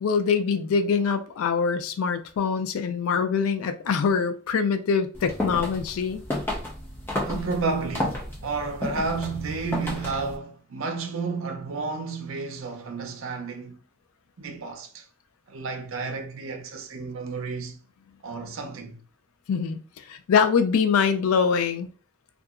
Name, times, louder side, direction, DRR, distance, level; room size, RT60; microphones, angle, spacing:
voice 1, 0.0-6.2 19.5-19.8 20.1-21.9, left 6 dB, 75° left, 0.3 m, -24 dB
sound 1, 5.1-10.4, left 1 dB, 10° left, 0.4 m, -32 dB
voice 2, 7.2-13.8 14.4-15.1 15.5-17.8 18.2-19.0, right 4 dB, 70° right, 0.5 m, -31 dB
2.8 x 2.3 x 2.4 m
head